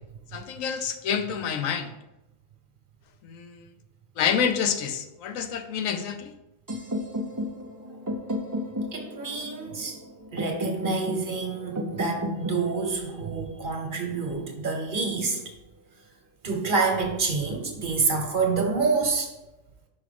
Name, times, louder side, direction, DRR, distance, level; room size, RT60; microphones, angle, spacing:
voice 1, 0.3-1.9 3.2-3.7 4.2-6.3, left 7 dB, 85° left, 8 dB, 1.1 m, -28 dB
sound 1, 6.7-14.6, equal, 25° right, 0.5 m, -34 dB
voice 2, 8.9-10.0 10.3-15.4 16.4-19.3, right 4 dB, 45° right, 3 dB, 1.1 m, -27 dB
5.3 x 4.7 x 5.1 m, 0.98 s
omnidirectional pair, 1.3 m